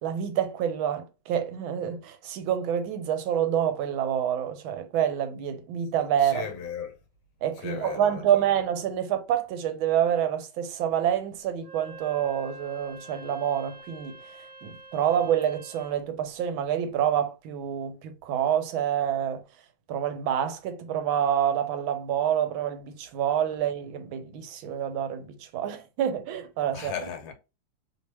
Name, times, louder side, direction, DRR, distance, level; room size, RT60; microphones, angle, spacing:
voice 1, 0.0-6.4 7.4-14.2 14.6-19.4 19.9-26.9, right 9 dB, 75° right, 1.4 m, -27 dB
voice 2, 6.2-7.0 7.6-8.5 26.7-27.3, left 8 dB, 75° left, 1.4 m, -36 dB
Wind instrument woodwind instrument, 11.6-16.1, right 3 dB, 55° right, 1.5 m, -47 dB
3.4 x 2.9 x 3.0 m
omnidirectional pair, 2.3 m